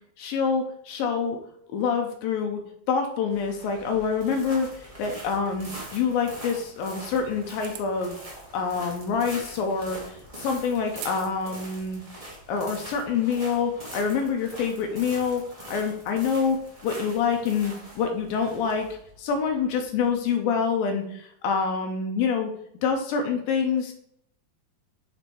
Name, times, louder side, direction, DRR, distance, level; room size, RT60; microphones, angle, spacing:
voice 1, 0.2-1.4 1.7-8.2 8.5-12.0 12.5-18.9 19.2-22.5 22.8-23.9, left 6 dB, 80° left, 3 dB, 2.6 m, -26 dB
sound 1, 3.3-20.2, right 1 dB, 70° right, 0.3 m, -43 dB
sound 2, 7.6-8.0 9.0-9.1 11.0-11.3 11.7-11.8 12.4-12.8, right 12 dB, 90° right, 2.5 m, -41 dB
7.0 x 4.4 x 4.5 m, 0.70 s
omnidirectional pair, 4.2 m